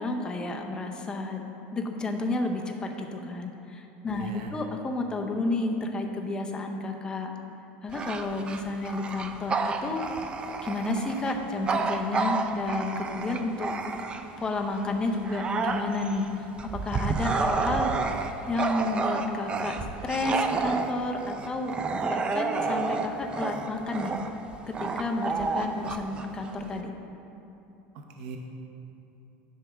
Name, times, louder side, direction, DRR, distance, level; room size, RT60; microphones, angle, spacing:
voice 1, 0.0-7.3 7.8-10.0 10.6-13.7 14.4-17.9 18.5-21.7 22.1-24.1 24.7-26.9, left 2 dB, 15° left, 3 dB, 0.6 m, -31 dB
voice 2, 4.1-4.5 27.9-28.4, right 5 dB, 70° right, 2 dB, 0.8 m, -39 dB
Bark / Growling, 7.9-14.5 14.9-26.8, right 4 dB, 20° right, 0.4 m, -30 dB
10.0 x 3.5 x 6.0 m, 2.9 s
supercardioid pair, 150°, 5 cm